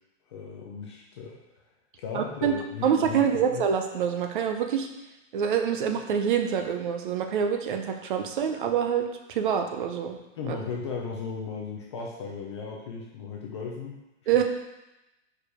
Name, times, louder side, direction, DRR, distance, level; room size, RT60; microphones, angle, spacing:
voice 1, 0.3-1.4 2.0-3.7 10.4-14.0 14.3-14.4, left 5 dB, 25° left, -1 dB, 0.4 m, -36 dB
voice 2, 2.1-2.5 2.8-4.9 5.3-9.0 9.3-10.2 10.5-10.6 14.3-14.4, right 8 dB, 40° right, 5 dB, 0.6 m, -26 dB
4.9 x 4.8 x 4.8 m, 0.96 s
supercardioid pair, 175°, 38 cm